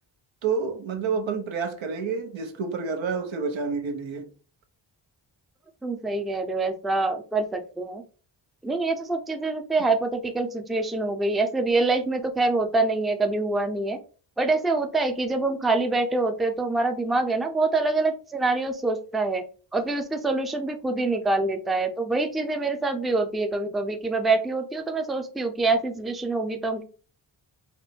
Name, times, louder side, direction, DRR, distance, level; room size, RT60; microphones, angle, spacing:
voice 1, 0.4-4.3, right 5 dB, 85° right, 1.0 m, -29 dB
voice 2, 5.8-8.0 8.6-14.0 14.4-19.4 19.7-26.8, right 3 dB, ahead, 0.4 m, -25 dB
4.3 x 2.1 x 4.3 m
cardioid pair, 80°, 45 cm